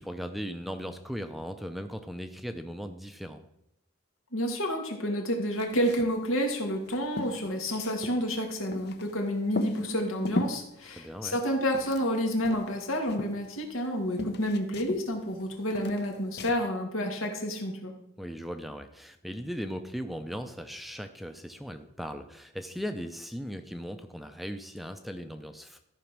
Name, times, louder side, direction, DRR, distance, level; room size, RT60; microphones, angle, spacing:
voice 1, 0.0-3.4 10.9-11.4 18.2-25.8, equal, ahead, 7 dB, 0.5 m, -38 dB
voice 2, 4.3-17.9, equal, 85° left, 2 dB, 2.1 m, -29 dB
sound 1, 5.6-6.2 6.5-6.6 6.9-9.1 9.5-10.6 11.2-12.2 12.4-13.9 14.2-15.4 15.7-16.6, left 1 dB, 50° left, 0.7 m, -36 dB
13.5 x 5.2 x 6.0 m, 0.83 s
head